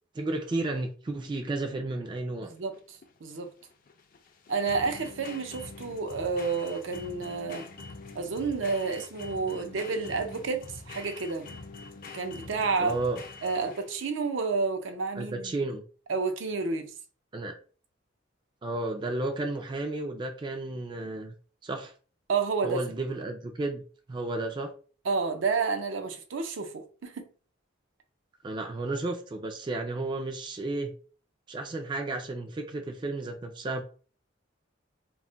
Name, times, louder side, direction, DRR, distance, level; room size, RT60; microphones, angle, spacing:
voice 1, 0.2-2.5 12.8-13.2 15.2-15.8 17.3-17.6 18.6-21.3 21.6-21.9 22.6-23.8 24.1-24.7 28.4-30.9 31.5-33.8, right 2 dB, 25° right, 0.3 m, -32 dB
sound 1, 2.4-14.1, left 3 dB, 45° left, 0.4 m, -45 dB
voice 2, 2.4-3.5 4.5-7.7 8.1-11.5 12.1-13.0 13.4-15.6 16.1-16.9 22.3-22.8 25.0-27.3, right 4 dB, 75° right, 0.5 m, -30 dB
2.3 x 2.1 x 3.7 m
head